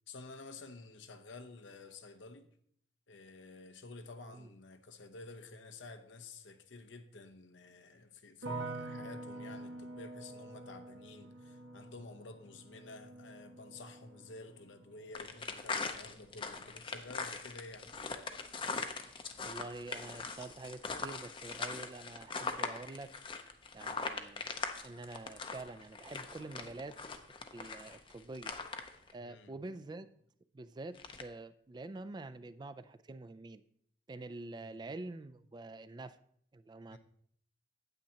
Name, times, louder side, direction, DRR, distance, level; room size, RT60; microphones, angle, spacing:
voice 1, 0.1-2.5 3.1-17.9 29.2-29.5 34.6-34.8 36.9-37.0, left 3 dB, 90° left, 0.8 m, -51 dB
sound 1, 8.4-19.5 19.8-20.5, right 2 dB, 90° right, 0.8 m, -48 dB
sound 2, 15.1-29.1 30.9-31.2, left 4 dB, 30° left, 0.6 m, -41 dB
voice 2, 19.4-23.1 23.7-24.5 24.8-27.0 27.5-28.6 29.1-30.1 30.5-33.6 34.1-36.2 36.5-37.0, right 2 dB, 25° right, 0.3 m, -46 dB
9.1 x 8.5 x 2.8 m
head